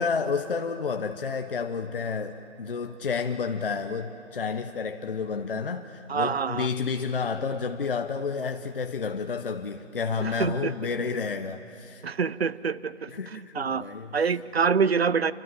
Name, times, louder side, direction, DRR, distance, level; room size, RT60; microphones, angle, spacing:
voice 1, 0.0-12.0 13.1-14.2, left 5 dB, 50° left, 6 dB, 1.1 m, -30 dB
voice 2, 6.1-6.7 10.2-10.7 12.0-13.8 14.1-15.3, right 6 dB, 55° right, 18 dB, 0.8 m, -26 dB
28.0 x 24.5 x 7.5 m, 2.8 s
figure-of-eight pair, 160°, 36 cm